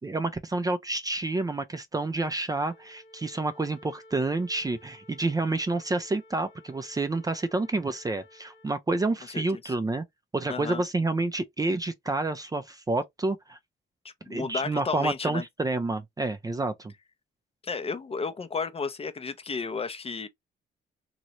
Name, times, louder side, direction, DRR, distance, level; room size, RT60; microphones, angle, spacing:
voice 1, 0.0-10.0 10.3-13.6 14.3-16.9, right 2 dB, 20° right, 0.5 m, -29 dB
Wind instrument woodwind instrument, 2.4-8.7, left 1 dB, 85° left, 0.8 m, -55 dB
voice 2, 9.3-9.7 10.5-10.8 14.0-15.4 17.6-20.3, left 4 dB, 30° left, 0.6 m, -33 dB
3.0 x 2.9 x 2.5 m
cardioid pair, 90°, 20 cm